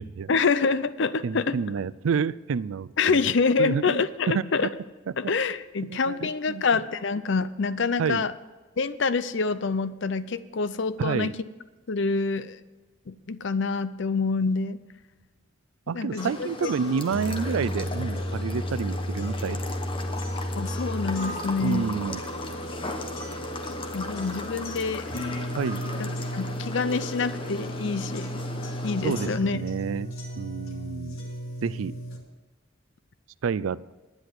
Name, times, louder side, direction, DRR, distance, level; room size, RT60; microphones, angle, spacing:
voice 1, 0.3-1.6 3.0-4.7 5.2-8.3 8.8-11.3 11.9-12.6 13.1-14.8 15.9-16.7 20.5-21.9 23.9-25.0 25.9-28.3 28.8-29.6, left 4 dB, 60° left, 14 dB, 0.6 m, -26 dB
voice 2, 1.2-3.2 3.6-4.0 4.3-4.7 5.9-6.8 8.0-8.3 11.0-11.4 15.9-19.7 21.6-22.2 25.5-25.8 29.0-31.2 31.6-31.9 33.4-33.9, right 6 dB, 80° right, 19 dB, 0.4 m, -29 dB
sound 1, 16.2-32.2, equal, 85° left, 2.2 m, -34 dB
sound 2, 16.2-29.4, left 2 dB, 25° left, 1.0 m, -37 dB
10.5 x 9.7 x 6.1 m, 1.2 s
head